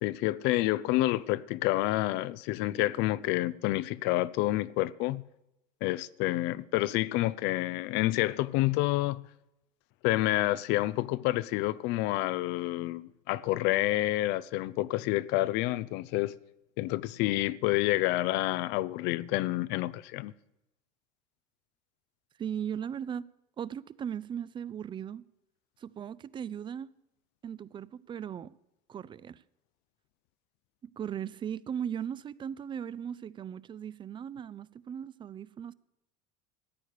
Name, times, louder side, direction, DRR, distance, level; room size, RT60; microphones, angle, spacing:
voice 1, 0.0-5.2 5.8-9.2 10.0-16.3 16.8-20.3, left 17 dB, 60° left, 0.5 m, -28 dB
voice 2, 22.4-25.2 25.8-26.9 27.4-28.6 28.9-29.4 31.0-35.7, right 8 dB, 25° right, 0.4 m, -38 dB
13.5 x 9.1 x 6.6 m
supercardioid pair, 120°, 20 cm